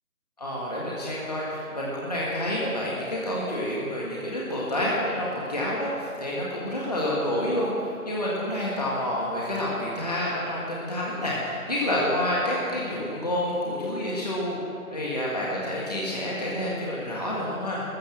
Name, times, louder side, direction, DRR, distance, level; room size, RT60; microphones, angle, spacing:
voice 1, 0.4-14.6 14.9-17.8, left 1 dB, 25° left, -6 dB, 1.8 m, -28 dB
14.0 x 13.0 x 7.7 m, 2.4 s
figure-of-eight pair, 170°, 44 cm